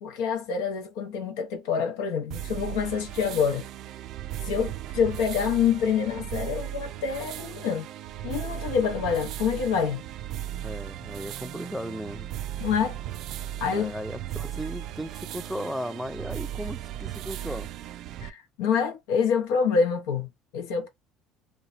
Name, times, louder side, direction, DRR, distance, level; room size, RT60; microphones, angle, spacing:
voice 1, 0.0-3.7 4.4-7.9 8.2-10.1 12.6-13.0 13.6-13.9 18.2-20.9, left 6 dB, 90° left, 0.7 m, -26 dB
sound 1, 2.3-18.3, right 12 dB, 70° right, 0.3 m, -36 dB
voice 2, 10.6-12.3 13.7-17.7, equal, 5° right, 0.4 m, -36 dB
2.9 x 2.2 x 2.4 m
supercardioid pair, 85°, 0 cm